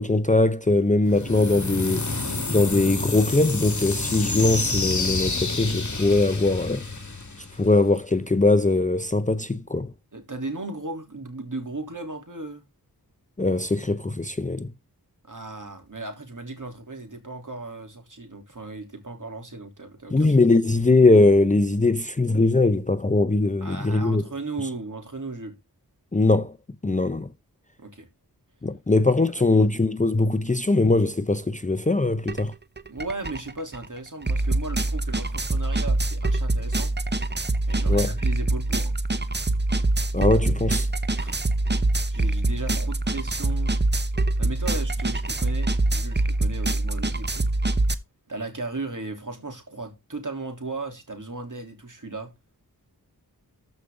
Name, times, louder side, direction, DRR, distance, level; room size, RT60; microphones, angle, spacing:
voice 1, 0.0-2.1 2.5-6.8 7.6-9.9 13.4-14.7 20.1-24.2 26.1-26.5 26.8-27.3 28.6-32.5 37.9-38.1 40.1-40.9, left 2 dB, 20° left, 0.7 m, -21 dB
sound 1, 1.1-7.9, left 3 dB, 45° left, 2.2 m, -29 dB
voice 2, 10.1-12.6 15.2-20.3 23.6-25.5 27.8-28.1 32.8-36.9 37.7-38.9 41.2-41.4 42.1-43.7 44.4-47.5 48.3-52.3, right 3 dB, 50° right, 3.3 m, -36 dB
sound 2, 32.3-32.4 32.8-47.9, right 2 dB, 25° right, 0.9 m, -24 dB
13.5 x 5.2 x 3.8 m
wide cardioid pair, 45°, 39 cm